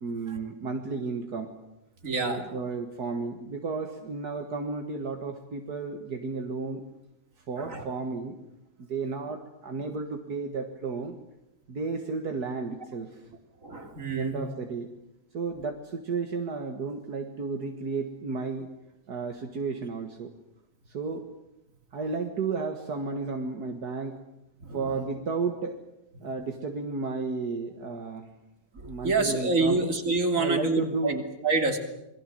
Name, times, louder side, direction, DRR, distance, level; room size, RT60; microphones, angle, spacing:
voice 1, 0.0-1.5 2.2-6.8 7.5-8.4 8.9-11.2 11.7-13.2 14.2-14.9 15.3-18.7 19.1-20.3 20.9-21.3 21.9-24.2 24.7-25.8 26.2-28.3 28.8-29.8 30.3-31.3, right 4 dB, 70° right, 4 dB, 2.2 m, -33 dB
voice 2, 2.0-2.6 7.6-7.8 13.6-14.4 24.6-25.1 26.2-26.3 28.8-31.2 31.4-31.8, right 3 dB, 50° right, 5 dB, 3.4 m, -27 dB
27.5 x 22.0 x 7.8 m, 0.88 s
omnidirectional pair, 1.7 m